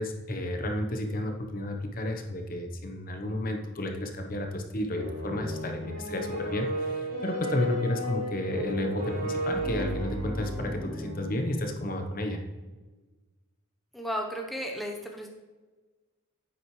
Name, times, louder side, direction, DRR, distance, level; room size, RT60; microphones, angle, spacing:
voice 1, 0.0-12.4, left 1 dB, 40° left, 4 dB, 1.0 m, -32 dB
sound 1, 4.9-11.9, equal, 40° right, 3.1 m, -34 dB
voice 2, 13.9-15.3, equal, ahead, 0 dB, 0.9 m, -34 dB
10.5 x 8.5 x 3.2 m, 1.3 s
head